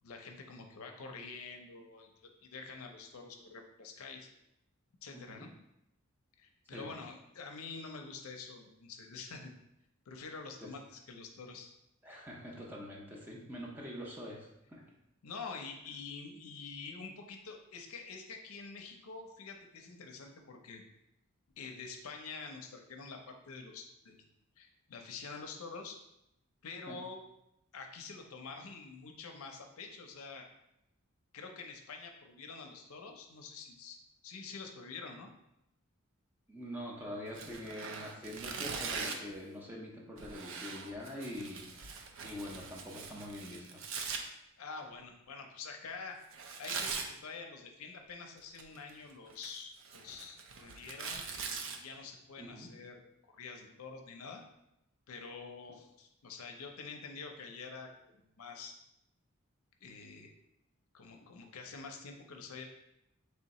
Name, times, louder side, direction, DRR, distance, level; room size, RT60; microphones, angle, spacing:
voice 1, 0.0-4.3 5.0-5.5 6.4-9.5 10.1-11.7 15.2-20.8 21.6-24.2 24.6-26.0 26.6-27.2 27.7-30.5 31.3-34.0 34.2-35.3 44.6-46.2 46.6-46.9 47.2-51.2 51.7-53.0 53.4-54.4 55.1-58.8 59.8-60.3 60.9-62.6, left 4 dB, 75° left, 3 dB, 0.5 m, -47 dB
voice 2, 5.1-5.5 6.7-7.0 10.6-10.7 12.0-14.8 16.3-16.5 26.9-27.0 36.5-43.8 52.4-52.7, left 1 dB, 10° right, -3 dB, 0.5 m, -45 dB
Tearing, 37.3-39.3 40.2-44.2 46.3-47.1 48.4-48.9 49.3-51.8, right 5 dB, 60° right, 0.4 m, -41 dB
3.3 x 2.8 x 4.1 m, 0.83 s
head